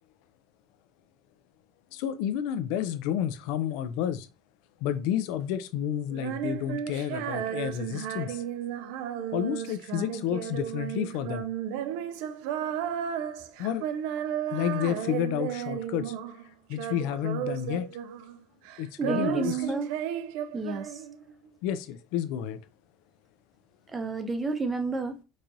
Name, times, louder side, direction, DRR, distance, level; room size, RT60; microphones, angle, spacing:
voice 1, 1.9-4.3 4.8-8.4 9.3-11.5 13.6-13.9 14.5-16.1 16.7-17.9 18.8-19.6 21.6-22.6, left 10 dB, 75° left, 0.4 m, -30 dB
Female singing, 6.1-16.4 16.7-18.4 18.6-21.3, right 9 dB, 80° right, 0.3 m, -34 dB
voice 2, 19.0-19.9 20.5-21.0 23.9-25.2, right 3 dB, 15° right, 0.5 m, -30 dB
4.6 x 2.5 x 2.7 m
cardioid pair, 160°, 0 cm